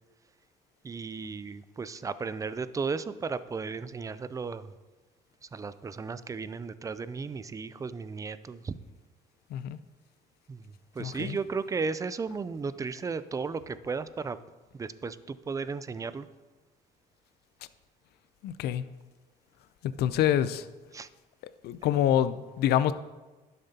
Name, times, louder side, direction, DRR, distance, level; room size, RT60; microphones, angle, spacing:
voice 1, 0.8-4.7 5.5-8.8 10.5-14.4 14.7-16.3 20.9-21.1, right 4 dB, 20° right, 14 dB, 0.4 m, -35 dB
voice 2, 11.0-11.4 18.4-18.8 19.8-20.6 21.6-22.9, left 11 dB, 70° left, 14 dB, 0.5 m, -26 dB
11.5 x 6.7 x 2.8 m, 1.2 s
cardioid pair, 110°, 17 cm